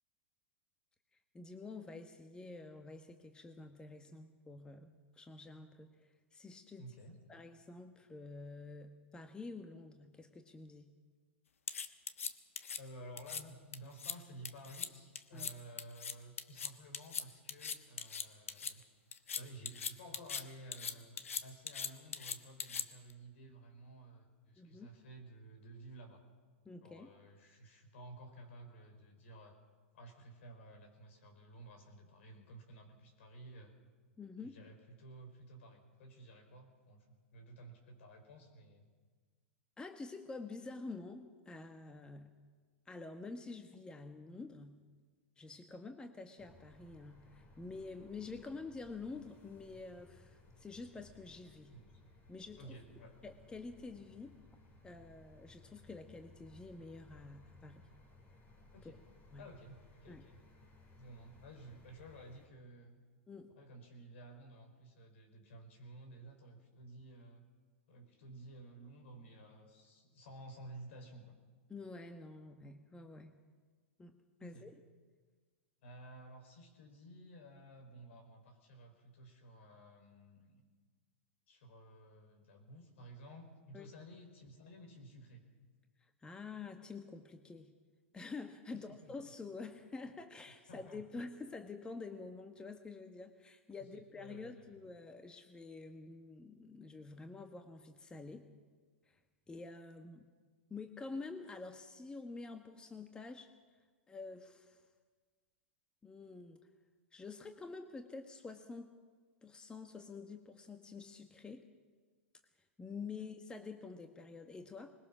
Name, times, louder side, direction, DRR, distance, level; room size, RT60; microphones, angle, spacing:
voice 1, 1.3-6.9 7.3-10.9 15.3-15.5 24.6-24.9 26.6-27.1 34.2-34.6 39.8-42.3 42.9-44.8 45.4-51.7 52.3-52.8 53.2-54.4 54.8-57.8 58.8-59.0 59.3-59.5 60.1-60.2 63.3-63.5 71.7-73.4 74.0-74.1 74.4-74.7 83.7-83.9 86.2-87.7 88.1-98.5 99.1-99.2 99.5-100.3 100.7-103.5 104.1-104.9 106.0-106.6 107.1-108.9 109.4-111.7 112.8-114.9, left 3 dB, 10° left, 6 dB, 1.3 m, -48 dB
voice 2, 6.8-7.2 12.8-18.8 19.3-26.2 26.8-29.6 29.9-33.7 34.4-37.1 37.3-38.8 51.7-51.9 52.6-53.2 58.7-59.0 59.4-60.4 60.9-63.0 63.6-67.4 67.9-71.3 74.4-74.7 75.8-80.6 81.5-85.4 88.7-89.1 90.7-91.0 94.2-94.8 113.2-113.3, right 1 dB, 70° left, 4 dB, 5.0 m, -54 dB
sound 1, 11.7-12.8 13.2-13.4 13.7-14.2 14.4-14.9 15.2-15.5 15.8-18.7 19.1-20.4 20.7-23.1, left 6 dB, 90° left, 1.2 m, -40 dB
sound 2, 46.4-62.5, left 2 dB, 30° left, 4.2 m, -61 dB
21.0 x 20.5 x 6.3 m, 1.5 s
hypercardioid pair, 120°, 7 cm